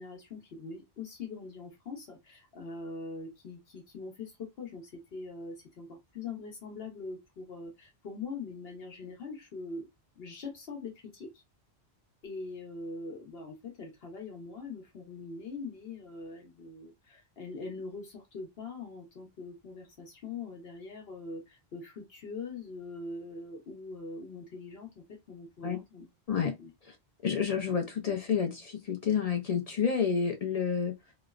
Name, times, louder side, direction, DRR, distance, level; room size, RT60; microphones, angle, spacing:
voice 1, 0.0-9.9 10.2-11.4 12.2-26.1 26.6-26.7, left 3 dB, 70° left, 1.0 m, -42 dB
voice 2, 27.2-30.9, left 7 dB, 55° left, 0.4 m, -29 dB
3.0 x 2.0 x 2.3 m
omnidirectional pair, 1.1 m